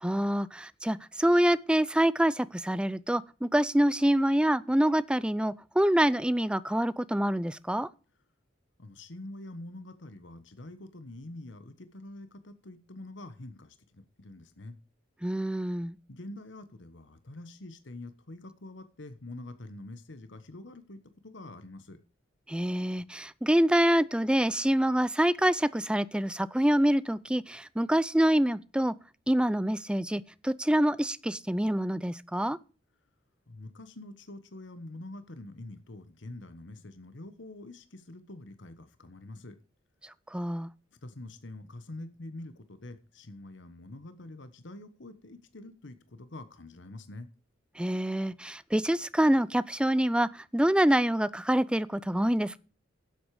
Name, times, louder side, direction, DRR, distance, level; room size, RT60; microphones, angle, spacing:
voice 1, 0.0-7.9 15.2-16.0 22.5-28.9 29.3-32.6 40.3-40.7 47.8-52.6, right 1 dB, 5° right, 0.4 m, -26 dB
voice 2, 8.8-14.8 16.1-22.0 33.5-39.6 40.9-47.3, left 2 dB, 65° left, 1.2 m, -45 dB
11.5 x 8.2 x 4.8 m
head